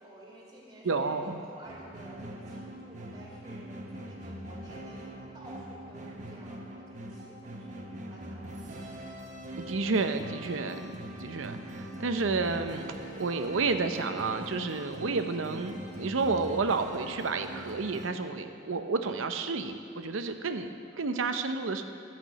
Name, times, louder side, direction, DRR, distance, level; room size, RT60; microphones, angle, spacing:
voice 1, 0.0-8.9, right 1 dB, 20° right, -5 dB, 2.6 m, -51 dB
voice 2, 0.8-1.4 9.6-12.9 13.1-21.8, right 4 dB, 90° right, 8 dB, 0.7 m, -31 dB
sound 1, 1.7-18.1, right 1 dB, 40° right, 1.0 m, -42 dB
12.0 x 5.9 x 7.5 m, 2.4 s
head